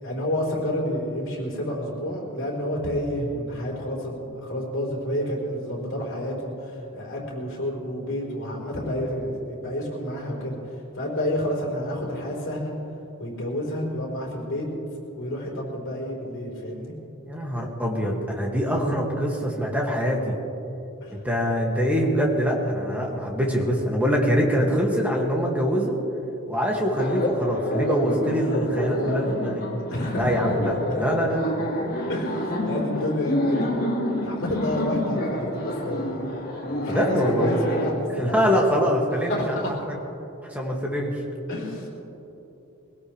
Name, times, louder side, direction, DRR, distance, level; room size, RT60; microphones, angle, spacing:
voice 1, 0.0-10.6 10.9-12.7 13.2-14.7 15.1-16.9 21.0-21.1 29.9-30.4 32.1-33.7 34.2-36.2 36.7-38.4 39.3-39.7 41.5-41.9, left 1 dB, 60° left, -3 dB, 4.2 m, -29 dB
voice 2, 17.3-20.3 21.1-26.0 26.5-29.6 30.1-31.6 36.8-37.5 38.2-39.6 39.9-40.0 40.5-41.2, equal, 5° right, -1 dB, 2.1 m, -24 dB
Laughter, 27.0-37.9, left 1 dB, 45° left, 2.0 m, -28 dB
23.0 x 17.0 x 3.3 m, 3.0 s
head